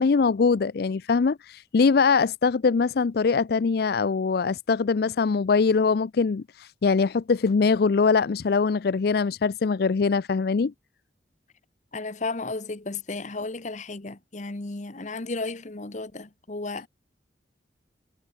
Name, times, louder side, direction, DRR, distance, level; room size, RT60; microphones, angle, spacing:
voice 1, 0.0-10.7, left 5 dB, 60° left, 0.4 m, -22 dB
voice 2, 11.9-16.9, left 3 dB, 45° left, 1.1 m, -33 dB
head